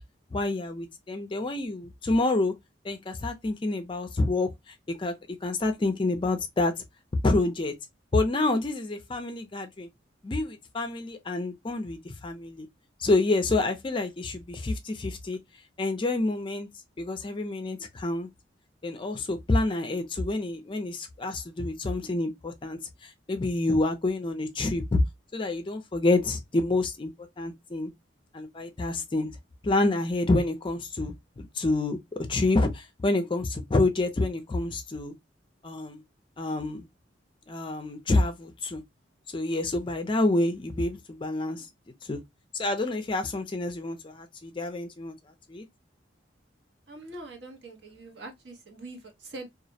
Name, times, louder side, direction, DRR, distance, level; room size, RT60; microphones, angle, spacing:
voice 1, 0.3-2.5 2.8-5.1 5.4-6.8 7.2-7.7 8.1-9.9 10.2-12.7 13.0-15.4 15.8-16.7 17.0-18.3 18.8-25.0 25.3-27.1 27.4-27.9 28.3-29.3 29.6-35.1 35.6-36.0 36.4-36.9 37.5-38.8 39.3-41.7 42.0-42.2 42.5-45.1 45.5-45.6, left 2 dB, 25° left, 0.4 m, -28 dB
voice 2, 46.9-49.5, right 2 dB, 65° right, 0.9 m, -43 dB
2.4 x 2.0 x 2.6 m
head